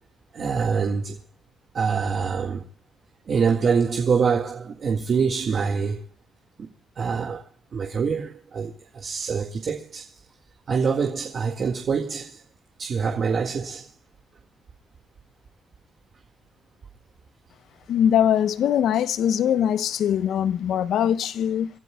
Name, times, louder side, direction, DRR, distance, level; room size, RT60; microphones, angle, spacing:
voice 1, 0.3-1.2 1.7-2.6 3.3-6.0 7.0-7.4 7.7-10.0 10.7-12.4 12.8-13.9, right 5 dB, 50° right, 1.9 m, -25 dB
voice 2, 17.9-21.7, left 9 dB, 75° left, 0.8 m, -22 dB
29.5 x 12.5 x 2.3 m
cardioid pair, 90°, 0 cm